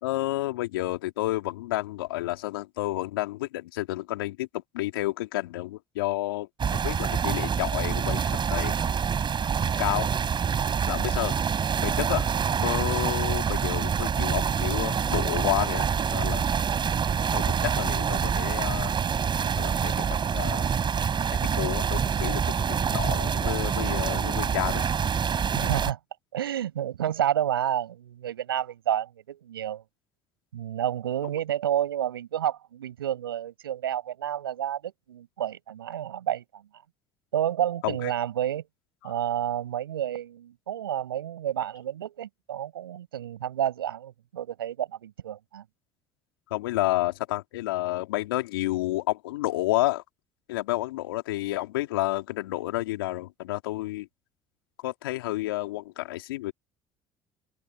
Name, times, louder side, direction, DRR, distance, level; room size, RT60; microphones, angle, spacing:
voice 1, 0.0-8.7 9.8-10.1 10.9-11.3 11.8-12.3 12.6-16.5 17.3-18.9 19.5-20.7 21.4-24.8 37.8-38.1 39.0-39.1 46.5-50.0 50.5-54.1 54.8-56.5, left 17 dB, 80° left, 3.3 m, -30 dB
sound 1, 6.6-25.9, right 7 dB, 40° right, 4.6 m, -26 dB
voice 2, 25.6-26.0 26.3-29.8 30.5-36.6 37.3-38.6 39.0-45.6, right 11 dB, 90° right, 7.5 m, -30 dB
open air
hypercardioid pair, 60°, 12 cm